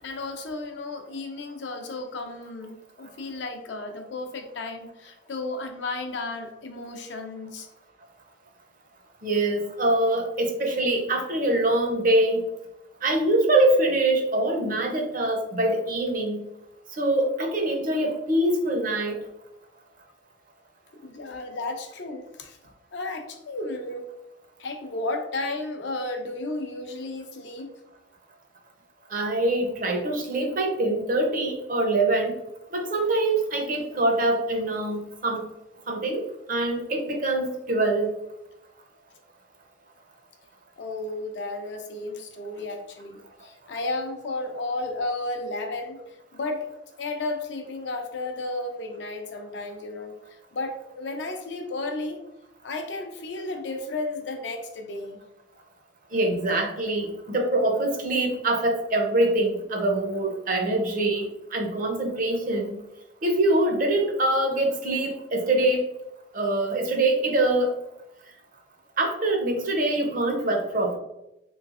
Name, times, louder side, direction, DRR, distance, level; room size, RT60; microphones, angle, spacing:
voice 1, 0.0-7.7 21.0-22.6 22.9-24.1 24.6-27.7 40.8-46.7 47.0-50.1 50.5-52.2 52.6-55.2, left 2 dB, 70° left, 4 dB, 0.6 m, -33 dB
voice 2, 9.2-12.4 13.0-16.4 17.0-19.2 29.1-32.3 32.7-35.4 35.9-36.2 36.5-38.1 56.1-62.8 63.2-65.9 66.3-67.7 69.0-71.0, right 1 dB, 45° right, 3 dB, 0.6 m, -24 dB
3.3 x 3.1 x 2.4 m, 0.88 s
head